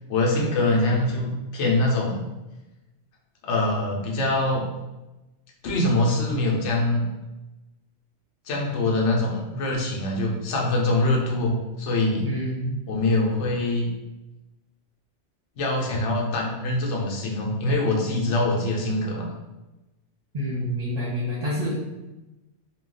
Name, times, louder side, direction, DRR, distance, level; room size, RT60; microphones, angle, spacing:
voice 1, 0.1-2.2 3.4-4.7 5.6-7.0 8.5-12.3 12.9-13.9 15.6-19.3, left 2 dB, 75° left, -1 dB, 0.9 m, -24 dB
voice 2, 12.2-12.8 20.3-21.7, equal, 40° right, -7 dB, 0.7 m, -27 dB
2.3 x 2.2 x 3.7 m, 1.0 s
omnidirectional pair, 1.3 m